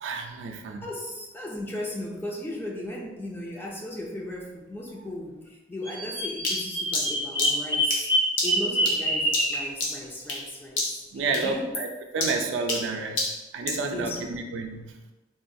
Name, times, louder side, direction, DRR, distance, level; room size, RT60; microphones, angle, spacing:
voice 1, 0.0-0.8 11.1-11.9 12.1-13.3 13.5-15.1, right 3 dB, 75° right, 4 dB, 0.4 m, -30 dB
voice 2, 0.8-8.1 8.4-11.7 13.9-14.5, left 1 dB, 10° left, -1 dB, 0.4 m, -36 dB
Bird vocalization bird call bird song, 5.8-9.7, equal, 50° left, 1.2 m, -26 dB
sound 1, 6.4-10.5 10.8-11.1 11.3-13.9, left 2 dB, 85° left, 0.8 m, -30 dB
3.6 x 2.3 x 2.6 m, 1.1 s
head